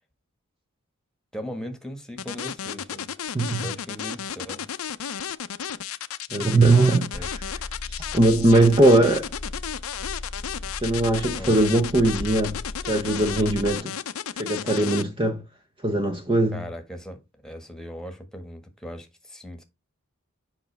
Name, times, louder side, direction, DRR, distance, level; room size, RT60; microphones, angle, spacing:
voice 1, 1.3-3.1 3.6-4.8 7.1-7.3 11.3-11.6 16.5-19.6, equal, 5° left, 1.6 m, -38 dB
plastic lead, 2.2-15.0, left 9 dB, 75° left, 0.6 m, -33 dB
voice 2, 3.3-3.7 6.3-7.2 7.9-9.3 10.8-12.6 12.9-13.9 14.4-15.4 15.8-16.6, right 2 dB, 25° right, 0.8 m, -20 dB
Car / Engine, 7.1-13.8, left 2 dB, 35° left, 0.8 m, -37 dB
7.7 x 5.8 x 3.4 m
head